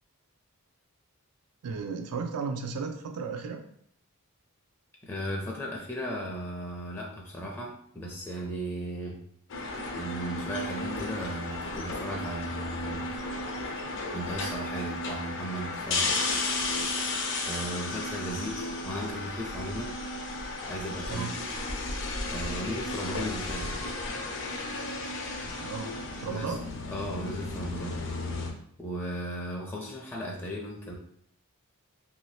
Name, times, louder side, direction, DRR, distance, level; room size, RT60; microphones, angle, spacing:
voice 1, 1.6-3.6 18.3-18.4 21.1-21.3 25.4-25.9 26.2-26.7, right 5 dB, 85° right, 5 dB, 0.4 m, -34 dB
voice 2, 5.0-9.2 9.9-13.1 14.1-16.1 17.5-19.9 20.7-21.3 22.3-23.8 26.3-26.5 26.9-28.0 28.8-30.9, equal, 10° left, -3 dB, 0.4 m, -36 dB
sound 1, 9.5-28.5, left 2 dB, 60° left, 0.5 m, -34 dB
2.7 x 2.7 x 3.2 m, 0.65 s
head